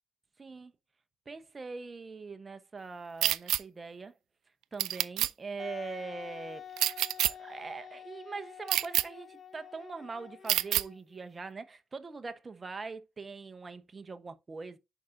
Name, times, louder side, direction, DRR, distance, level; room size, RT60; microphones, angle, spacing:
voice 1, 0.4-0.7 1.3-4.2 4.7-6.7 7.3-14.8, right 4 dB, 30° right, 1.1 m, -42 dB
sound 1, 3.2-3.6 4.8-5.3 6.8-7.3 8.7-9.0 10.5-10.8, right 14 dB, 85° right, 0.3 m, -27 dB
Wind instrument woodwind instrument, 5.6-11.2, left 9 dB, 50° left, 1.0 m, -48 dB
9.3 x 5.1 x 2.7 m
cardioid pair, 90°, 0 cm